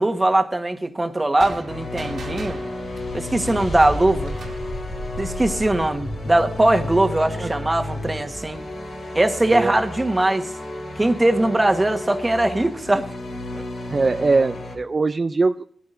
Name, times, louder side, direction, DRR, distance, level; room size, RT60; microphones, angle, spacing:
voice 1, 0.0-2.6 3.1-4.3 5.2-8.6 9.1-10.5 11.0-13.1 13.5-13.6, right 1 dB, 25° right, 1.4 m, -20 dB
sound 1, 1.4-4.7, right 2 dB, 80° right, 2.5 m, -38 dB
sound 2, 1.7-14.8, left 2 dB, 85° left, 4.4 m, -32 dB
voice 2, 13.9-15.6, right 3 dB, 45° right, 0.4 m, -21 dB
18.0 x 11.0 x 2.7 m
cardioid pair, 55°, 0 cm